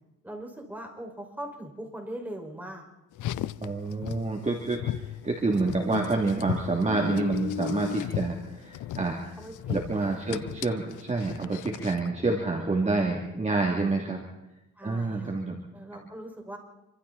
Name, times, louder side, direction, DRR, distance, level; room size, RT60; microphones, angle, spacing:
voice 1, 0.2-2.8 9.4-10.4 14.8-15.4 15.7-16.6, right 1 dB, 5° right, 1 dB, 5.8 m, -41 dB
Car, 3.1-12.1, left 12 dB, 80° left, 0.7 m, -36 dB
voice 2, 3.6-9.2 9.7-14.2 14.8-15.6, right 3 dB, 25° right, 0 dB, 3.0 m, -28 dB
27.0 x 25.0 x 4.3 m, 0.93 s
cardioid pair, 120°, 30 cm